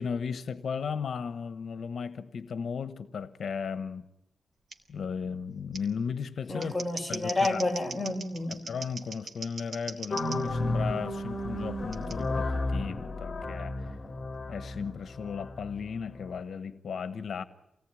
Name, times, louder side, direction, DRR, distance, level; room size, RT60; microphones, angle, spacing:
voice 1, 0.0-4.1 4.9-6.8 7.1-7.6 8.5-14.0 14.5-17.4, left 6 dB, 65° left, 12 dB, 1.1 m, -35 dB
Scissors, 4.7-4.8 5.7-5.8 6.4-10.4 11.9-12.2, right 3 dB, 55° right, 3.5 m, -40 dB
voice 2, 6.5-8.6, left 2 dB, ahead, 0 dB, 4.1 m, -30 dB
sound 1, 10.1-16.4, left 1 dB, 30° left, 2.6 m, -33 dB
28.0 x 19.0 x 9.7 m, 0.88 s
wide cardioid pair, 155°, 0 cm